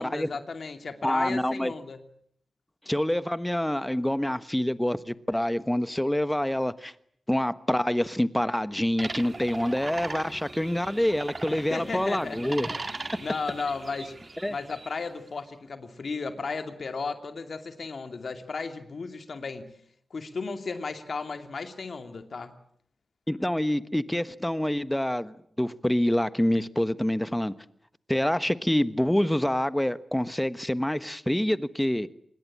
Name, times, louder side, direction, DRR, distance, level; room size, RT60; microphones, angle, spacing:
voice 1, 0.0-2.0 11.5-14.2 14.5-19.8 20.1-22.5, left 4 dB, 60° left, 8 dB, 2.6 m, -35 dB
voice 2, 1.0-1.7 2.9-6.9 7.3-12.7 14.4-14.5 23.3-27.5 28.1-32.1, left 1 dB, 5° left, 14 dB, 1.3 m, -26 dB
sound 1, 9.0-15.0, right 3 dB, 35° right, 2.1 m, -39 dB
26.0 x 21.0 x 8.8 m, 0.67 s
wide cardioid pair, 90°, 0 cm